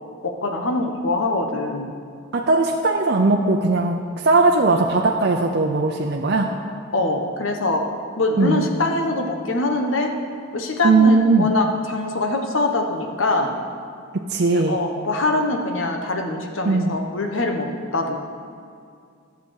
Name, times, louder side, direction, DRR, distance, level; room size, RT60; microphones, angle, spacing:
voice 1, 0.2-1.9 6.9-7.8 8.2-10.1 10.5-13.5 14.5-18.2, left 2 dB, 75° left, 3 dB, 1.3 m, -23 dB
voice 2, 2.3-6.5 8.4-8.7 10.8-11.5 14.3-14.8 16.6-16.9, right 3 dB, 55° right, 1 dB, 0.7 m, -18 dB
12.0 x 6.9 x 6.4 m, 2.3 s
head